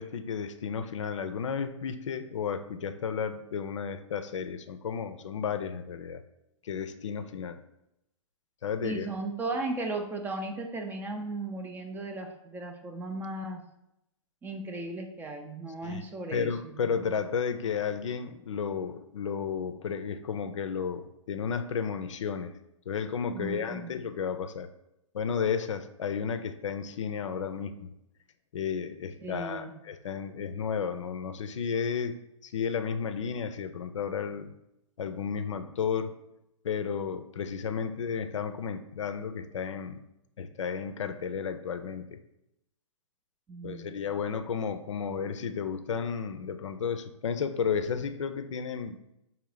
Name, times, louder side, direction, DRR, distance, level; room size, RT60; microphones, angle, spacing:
voice 1, 0.0-6.2 6.6-7.6 8.6-9.1 15.8-16.1 16.3-22.5 22.9-24.7 25.1-27.9 28.5-32.2 32.4-34.5 35.0-36.1 36.6-40.0 40.4-42.2 43.6-49.1, left 6 dB, 70° left, 9 dB, 0.5 m, -33 dB
voice 2, 8.8-13.6 14.4-16.8 23.3-23.9 29.2-29.8 43.5-44.0, right 2 dB, 10° right, 4 dB, 0.4 m, -36 dB
3.8 x 3.0 x 4.7 m, 0.85 s
figure-of-eight pair, 115°, 16 cm